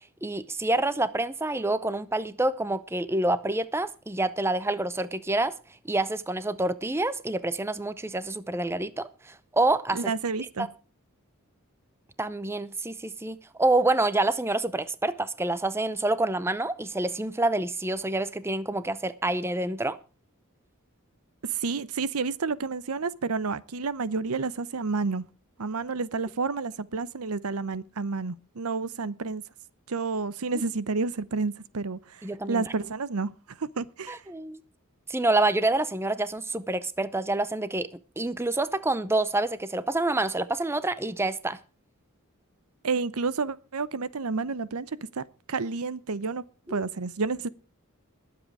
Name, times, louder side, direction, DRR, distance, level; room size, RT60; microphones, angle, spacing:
voice 1, 0.2-5.5 5.9-10.0 10.6-10.7 12.2-20.0 32.2-32.6 34.1-34.6 35.1-37.9 38.2-41.6 46.7-46.8, right 2 dB, 10° right, 0.6 m, -27 dB
voice 2, 9.9-10.7 21.4-25.2 25.6-29.4 29.9-34.2 42.8-44.9 45.1-46.4 46.7-47.5, right 4 dB, 90° right, 0.8 m, -30 dB
20.5 x 7.8 x 4.8 m
head